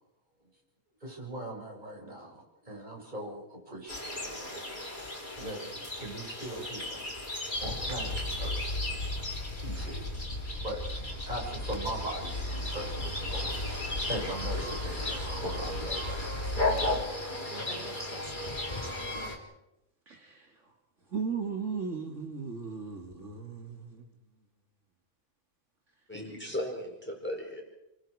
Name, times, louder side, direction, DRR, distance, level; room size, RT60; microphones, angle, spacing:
voice 1, 1.0-4.8 5.4-7.1 7.6-8.9 9.1-10.1 10.5-10.8 11.2-16.5 17.3-18.9, right 1 dB, 35° right, -1 dB, 6.4 m, -41 dB
sound 1, 3.9-19.4, left 2 dB, 35° left, 3.5 m, -36 dB
sound 2, 7.6-17.0, left 1 dB, 60° left, 2.6 m, -37 dB
voice 2, 20.1-20.5 21.1-24.0, right 5 dB, 65° right, 1 dB, 2.6 m, -36 dB
voice 3, 26.1-27.6, left 1 dB, 10° left, 1 dB, 4.9 m, -36 dB
29.5 x 23.5 x 4.9 m, 0.92 s
omnidirectional pair, 1.4 m